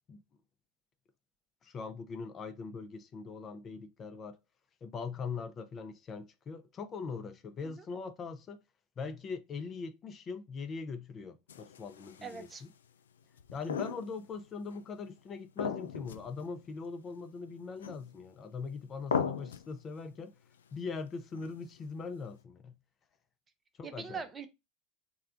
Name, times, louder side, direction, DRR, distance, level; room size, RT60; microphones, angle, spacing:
voice 1, 1.6-4.4 4.8-8.6 9.0-12.7 13.5-20.3 20.7-22.8 23.8-24.2, left 4 dB, 35° left, 0.5 m, -41 dB
sound 1, 11.5-12.6 13.4-14.4 14.7-14.8 15.6-16.3 16.6-16.7 17.8-18.3 19.1-19.7 21.3-21.8, left 7 dB, 85° left, 0.3 m, -37 dB
voice 2, 12.2-12.6 23.8-24.5, right 5 dB, 25° right, 0.7 m, -42 dB
3.2 x 2.3 x 3.7 m
hypercardioid pair, 80°, 0 cm